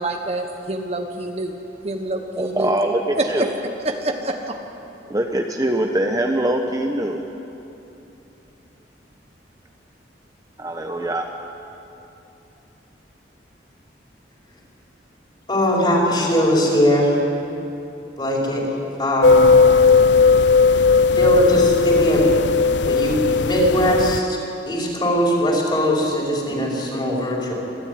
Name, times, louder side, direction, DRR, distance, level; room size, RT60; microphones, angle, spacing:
voice 1, 0.0-1.6 1.8-2.7 3.1-4.6, right 1 dB, 35° right, 4 dB, 1.2 m, -26 dB
voice 2, 2.4-3.5 5.1-7.2 10.6-11.3, right 1 dB, 20° right, 2 dB, 1.0 m, -23 dB
voice 3, 15.5-17.2 18.2-18.7 19.0-19.5 21.2-22.3 22.9-24.4 24.7-27.5, equal, 25° left, -3 dB, 5.1 m, -20 dB
sound 1, 19.2-24.2, left 4 dB, 80° left, 0.6 m, -16 dB
25.5 x 14.5 x 9.6 m, 2.9 s
head